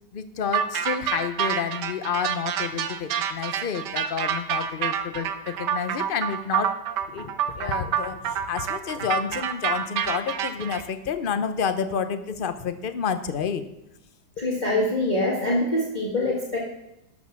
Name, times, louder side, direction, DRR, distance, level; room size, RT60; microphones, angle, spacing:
voice 1, 0.1-5.3 5.6-6.7 7.1-13.6 14.4-14.5, left 7 dB, 55° left, 10 dB, 0.6 m, -29 dB
sound 1, 0.5-10.8, right 9 dB, 80° right, 1.4 m, -27 dB
voice 2, 14.4-16.6, left 1 dB, 25° left, -4 dB, 2.0 m, -24 dB
13.0 x 6.5 x 6.0 m, 0.89 s
omnidirectional pair, 1.9 m